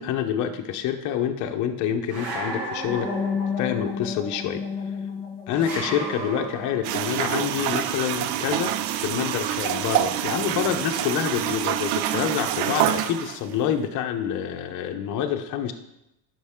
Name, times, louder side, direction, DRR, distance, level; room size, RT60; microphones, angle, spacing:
voice 1, 0.0-3.2 3.6-4.6 5.5-15.7, left 9 dB, 40° left, 5 dB, 0.8 m, -27 dB
sound 1, 2.1-3.7 5.5-6.9, right 2 dB, 50° right, 1.8 m, -34 dB
sound 2, 2.9-7.8, left 5 dB, 10° left, 2.0 m, -32 dB
sound 3, 6.8-13.4, right 12 dB, 80° right, 0.6 m, -26 dB
9.7 x 5.8 x 3.6 m, 0.86 s
cardioid pair, 145°, 49 cm